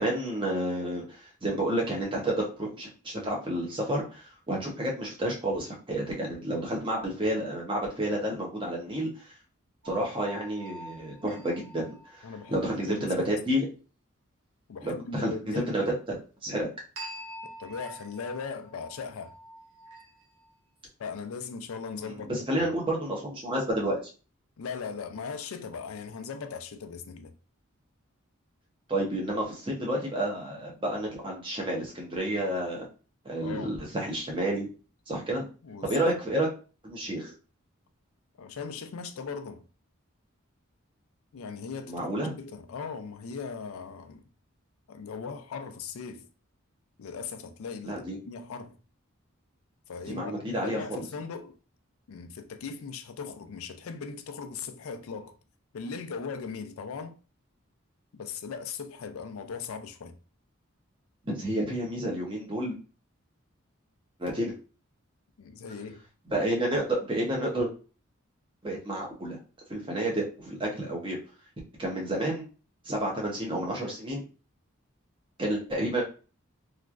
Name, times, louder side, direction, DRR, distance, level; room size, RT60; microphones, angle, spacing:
voice 1, 0.0-9.2 9.8-13.7 14.8-15.8 16.4-16.7 22.1-24.0 28.9-32.9 33.2-34.7 35.1-35.5 35.8-36.5 36.8-37.3 41.9-42.3 47.8-48.2 50.0-51.0 61.3-62.8 64.2-64.5 66.3-67.7 68.6-69.4 69.7-71.2 71.8-72.4 72.8-74.2 75.4-76.0, right 1 dB, 25° right, 0.7 m, -30 dB
sound 1, 9.8-12.7 17.0-20.5, right 1 dB, 70° right, 0.9 m, -46 dB
voice 2, 12.2-13.3 14.7-15.9 17.4-19.3 21.0-22.3 22.6-22.7 24.6-27.3 33.4-33.8 35.6-35.9 38.4-39.6 41.3-42.1 42.4-44.2 44.9-46.3 47.0-48.7 49.9-51.6 52.1-55.4 55.7-57.2 58.1-60.2 65.4-66.0, left 5 dB, 85° left, 0.4 m, -39 dB
2.9 x 2.4 x 2.4 m
head